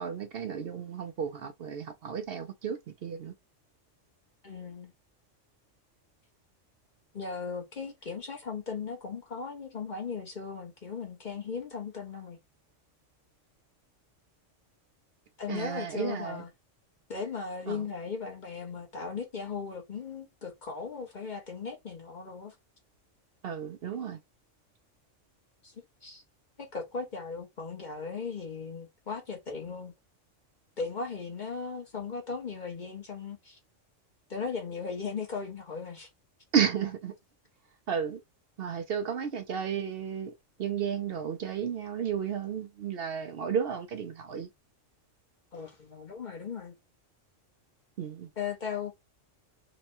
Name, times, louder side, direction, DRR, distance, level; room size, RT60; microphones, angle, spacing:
voice 1, 0.0-3.3 15.5-16.4 17.7-17.8 23.4-24.2 36.5-37.1 37.9-38.2 38.6-40.3 40.6-44.5 48.0-48.3, right 7 dB, 60° right, 0.7 m, -32 dB
voice 2, 4.4-4.9 7.1-12.4 15.4-16.5 17.1-22.5 25.6-25.7 26.0-26.2 26.6-29.9 30.8-33.6 34.3-36.1 45.5-46.7 48.4-48.9, left 5 dB, 40° left, 1.0 m, -37 dB
3.0 x 2.3 x 4.2 m
omnidirectional pair, 1.3 m